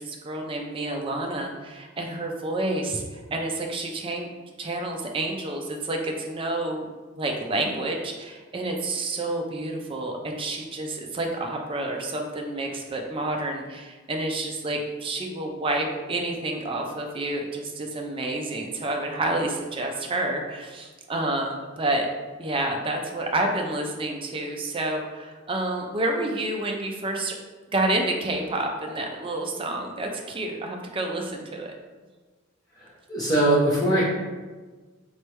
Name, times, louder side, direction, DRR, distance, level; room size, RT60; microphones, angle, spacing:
voice 1, 0.0-4.3 4.6-6.9 7.2-22.1 22.4-27.3 27.7-31.7, right 2 dB, 25° right, 2 dB, 0.5 m, -29 dB
voice 2, 32.8-34.0, right 1 dB, 20° left, -9 dB, 1.2 m, -22 dB
4.4 x 3.2 x 3.1 m, 1.3 s
head